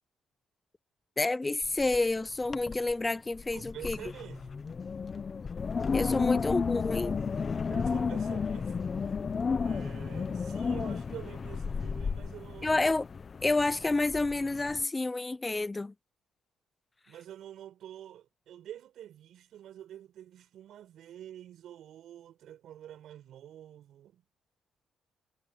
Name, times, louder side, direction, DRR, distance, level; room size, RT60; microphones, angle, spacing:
voice 1, 1.2-4.0 5.9-7.2 12.6-13.1 13.4-15.9, left 2 dB, 20° left, 0.6 m, -29 dB
Wind, 1.6-2.1 2.4-2.9 3.3-14.8, left 5 dB, 40° left, 1.1 m, -33 dB
voice 2, 3.5-4.5 6.1-6.4 7.7-9.3 9.6-12.8 17.1-24.2, right 11 dB, 75° right, 7.0 m, -48 dB
cardioid pair, 90°, 0 cm